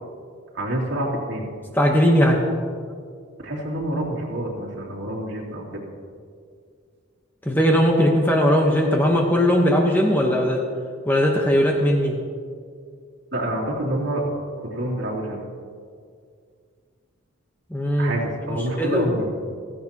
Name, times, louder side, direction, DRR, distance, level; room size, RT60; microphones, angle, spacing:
voice 1, 0.5-1.5 3.4-5.8 13.3-14.3 14.6-15.5 18.0-19.3, right 1 dB, 60° right, -4 dB, 3.0 m, -27 dB
voice 2, 1.7-2.4 7.4-10.6 11.0-12.2 17.7-18.1 18.5-19.1, equal, 10° left, 0 dB, 1.1 m, -19 dB
17.0 x 15.5 x 3.0 m, 2.2 s
head